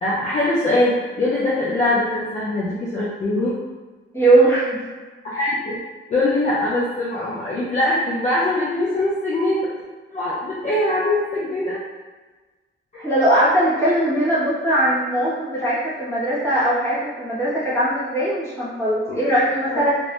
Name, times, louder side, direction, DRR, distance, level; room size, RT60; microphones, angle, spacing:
voice 1, 0.0-3.5 5.2-5.8 6.1-9.6 10.1-11.8 12.9-13.1 19.1-19.8, left 1 dB, 35° left, -7 dB, 0.5 m, -22 dB
voice 2, 4.1-4.8 13.0-20.0, right 1 dB, 10° left, -10 dB, 1.2 m, -20 dB
3.0 x 2.6 x 3.1 m, 1.3 s
wide cardioid pair, 150°, 21 cm